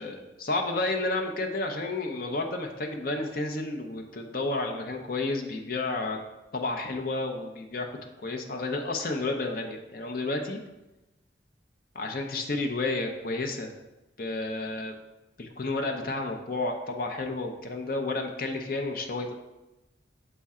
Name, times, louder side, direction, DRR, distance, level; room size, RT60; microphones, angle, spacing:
voice 1, 0.0-6.2 6.5-7.9 8.2-10.6 12.0-13.7 14.2-14.9 15.4-19.3, left 2 dB, 50° left, 3 dB, 0.7 m, -31 dB
6.8 x 4.2 x 3.6 m, 1.0 s
head